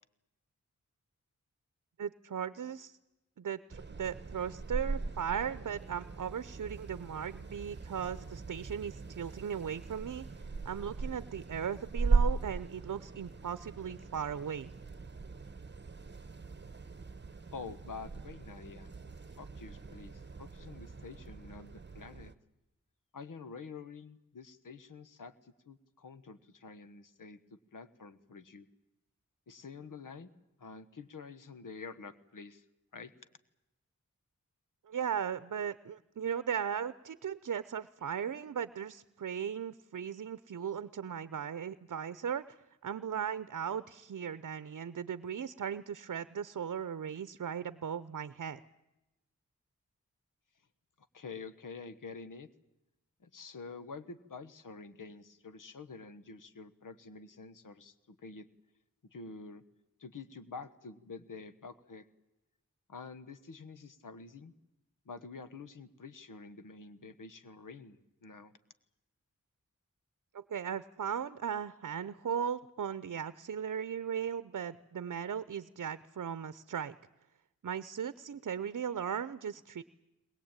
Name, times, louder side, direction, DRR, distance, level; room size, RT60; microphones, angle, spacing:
voice 1, 2.0-3.0 3.4-10.3 10.6-14.7 34.9-42.4 42.8-48.6 70.3-77.0 77.6-79.8, right 8 dB, 70° right, 15 dB, 0.7 m, -37 dB
sound 1, 3.7-22.3, right 4 dB, 35° right, 1.1 m, -38 dB
voice 2, 17.5-18.9 19.4-22.3 23.1-28.7 29.5-30.3 30.6-32.6 32.9-33.1 51.1-52.5 53.2-58.5 59.1-59.6 60.0-62.1 62.9-64.5 65.0-68.5, left 4 dB, 85° left, 12 dB, 1.3 m, -48 dB
21.5 x 20.5 x 8.9 m, 0.93 s
wide cardioid pair, 90°, 31 cm